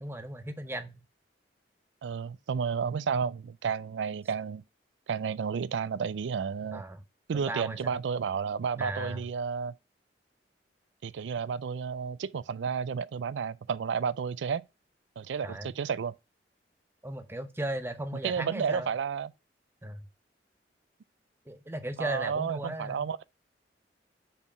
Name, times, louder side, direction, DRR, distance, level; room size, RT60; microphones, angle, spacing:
voice 1, 0.0-1.0 6.7-7.0 7.3-7.9 8.8-9.2 15.4-15.7 17.0-18.9 19.8-20.1 21.5-23.1, right 1 dB, 15° right, 0.7 m, -36 dB
voice 2, 2.0-4.6 5.1-6.8 7.3-9.7 11.0-14.6 15.2-16.1 18.2-19.3 22.0-23.2, right 6 dB, 85° right, 0.4 m, -31 dB
5.6 x 4.7 x 5.3 m
head